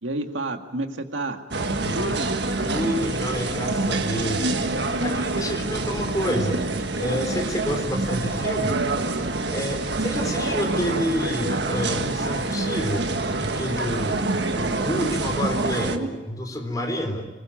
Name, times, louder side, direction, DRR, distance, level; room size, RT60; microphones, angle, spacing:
voice 1, 0.0-1.4 1.8-2.3 15.8-16.1, right 2 dB, 80° right, 5 dB, 2.0 m, -30 dB
sound 1, 1.5-16.0, right 2 dB, 60° right, 1.6 m, -26 dB
voice 2, 1.8-2.1 2.6-4.5 5.0-6.6 7.0-8.8 9.5-14.2 14.6-17.3, equal, 20° left, 4 dB, 4.0 m, -29 dB
27.5 x 21.0 x 9.1 m, 1.2 s
head